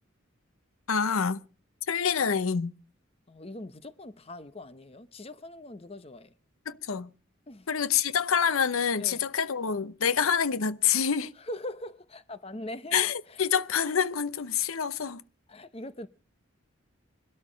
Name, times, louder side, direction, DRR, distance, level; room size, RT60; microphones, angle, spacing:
voice 1, 0.9-1.4 1.9-2.7 6.7-7.1 7.7-11.3 12.9-15.2, left 7 dB, 90° left, 0.7 m, -27 dB
voice 2, 3.3-6.3 7.5-7.7 8.9-9.3 11.4-13.4 15.5-16.1, left 1 dB, 30° left, 0.8 m, -42 dB
22.0 x 13.0 x 5.1 m
head